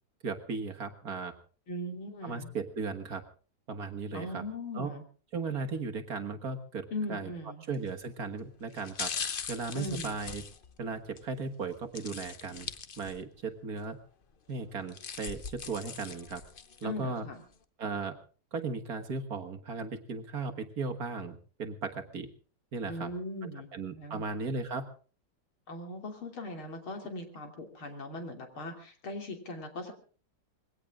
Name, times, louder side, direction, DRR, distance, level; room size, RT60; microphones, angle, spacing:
voice 1, 0.2-1.3 2.2-3.2 3.7-4.4 4.7-4.9 5.3-7.3 7.7-9.1 9.5-10.4 10.8-12.7 13.0-14.0 14.5-16.4 16.8-17.3 17.8-18.2 18.5-22.3 22.7-23.1 23.7-24.9, right 4 dB, 50° right, 6 dB, 1.8 m, -36 dB
voice 2, 1.7-2.5 4.1-5.0 6.9-7.6 9.7-10.2 16.8-17.4 22.9-24.3 25.7-29.9, left 1 dB, 85° left, 4 dB, 3.8 m, -39 dB
sound 1, 7.7-8.0 8.7-11.2 11.9-13.4 13.8-13.9 14.7-16.8 17.3-17.4, left 6 dB, 55° left, 0.6 m, -40 dB
21.5 x 17.0 x 3.7 m, 0.40 s
omnidirectional pair, 2.2 m